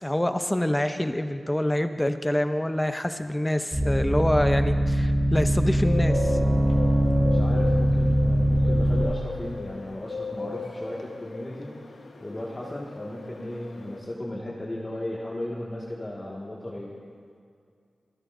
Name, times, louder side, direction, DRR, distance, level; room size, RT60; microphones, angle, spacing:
voice 1, 0.0-6.4, left 1 dB, 15° left, 9 dB, 0.8 m, -26 dB
sound 1, 3.7-9.0, equal, 10° right, 3.5 m, -22 dB
Bird, 5.7-14.0, left 4 dB, 85° left, 1.3 m, -37 dB
voice 2, 7.1-11.7 12.2-16.9, left 1 dB, 35° left, -5 dB, 1.9 m, -35 dB
25.0 x 11.0 x 2.7 m, 2.3 s
cardioid pair, 45°, 0 cm